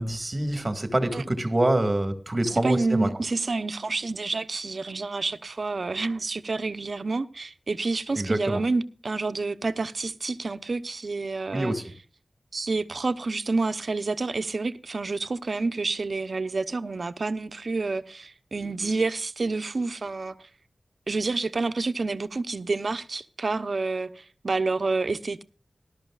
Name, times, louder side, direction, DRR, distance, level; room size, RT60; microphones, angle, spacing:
voice 1, 0.0-3.1 8.1-8.6 11.5-11.8, right 1 dB, 25° right, 1.9 m, -25 dB
voice 2, 2.4-11.7 12.5-20.4 21.1-25.4, right 3 dB, 60° right, 0.8 m, -28 dB
19.5 x 12.0 x 2.4 m
wide cardioid pair, 95°, 0 cm